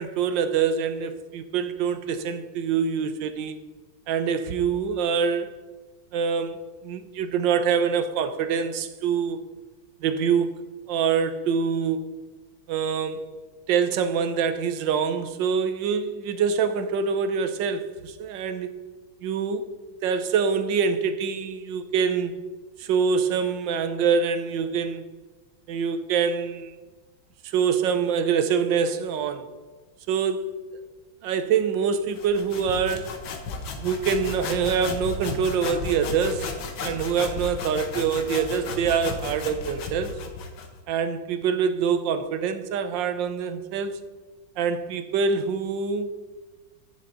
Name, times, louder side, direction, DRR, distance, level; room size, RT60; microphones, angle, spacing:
voice 1, 0.0-3.6 4.1-5.5 6.1-6.6 6.8-9.4 10.0-10.6 10.9-12.1 12.7-13.3 13.7-18.7 19.2-19.6 20.0-22.4 22.8-25.1 25.7-26.7 27.4-29.5 30.1-30.5 31.2-33.1 33.8-36.5 36.8-40.1 40.9-44.0 44.6-46.1, right 6 dB, 75° right, 1.4 m, -25 dB
sound 1, 32.1-40.8, left 4 dB, 80° left, 1.8 m, -34 dB
10.0 x 7.4 x 3.9 m
omnidirectional pair, 2.1 m